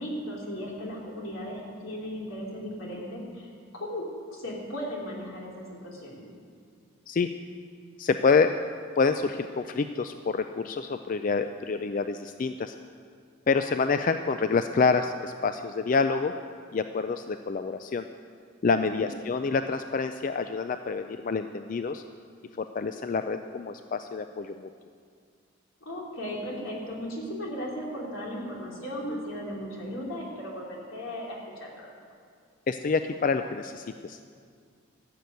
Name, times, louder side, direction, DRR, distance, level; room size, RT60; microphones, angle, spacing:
voice 1, 0.0-3.5 3.7-4.0 4.3-6.3 25.8-31.9, equal, 85° left, -3 dB, 3.1 m, -36 dB
voice 2, 8.0-8.5 9.0-12.7 13.5-16.3 16.7-18.1 18.6-22.0 22.6-24.7 32.7-34.2, left 4 dB, 40° left, 8 dB, 0.3 m, -27 dB
14.0 x 6.8 x 9.2 m, 2.1 s
head